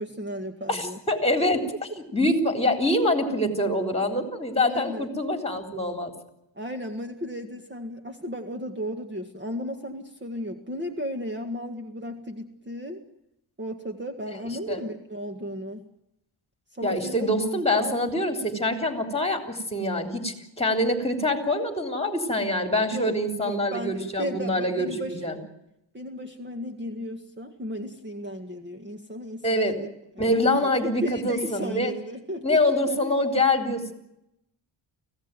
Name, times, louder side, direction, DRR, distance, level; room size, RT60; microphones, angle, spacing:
voice 1, 0.0-1.0 4.7-5.1 6.6-13.0 13.6-15.8 16.8-18.0 22.9-25.2 25.9-29.9 30.2-32.6 32.9-33.3, equal, 25° right, 5 dB, 2.0 m, -35 dB
voice 2, 0.7-1.6 2.1-6.1 14.7-14.8 16.8-25.4 29.4-29.8 30.2-31.9 32.4-33.9, left 1 dB, 15° left, 5 dB, 3.6 m, -25 dB
24.5 x 16.5 x 9.2 m, 0.84 s
cardioid pair, 100°, 47 cm